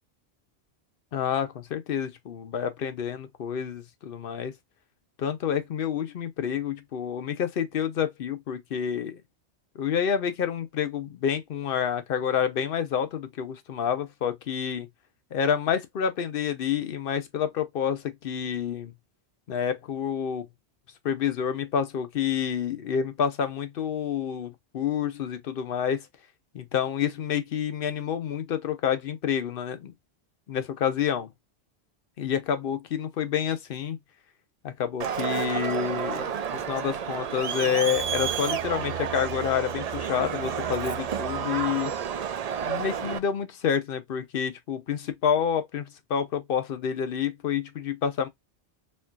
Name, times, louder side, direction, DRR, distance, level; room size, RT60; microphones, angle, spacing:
voice 1, 1.1-4.5 5.2-9.2 9.7-14.9 15.3-18.9 19.5-20.5 21.0-26.1 26.5-29.9 30.5-31.3 32.2-34.0 34.6-36.3 36.7-41.9 42.6-48.3, left 8 dB, 60° left, 0.8 m, -28 dB
Crowd, 35.0-43.2, right 8 dB, 55° right, 0.4 m, -30 dB
4.3 x 2.6 x 2.2 m
omnidirectional pair, 1.1 m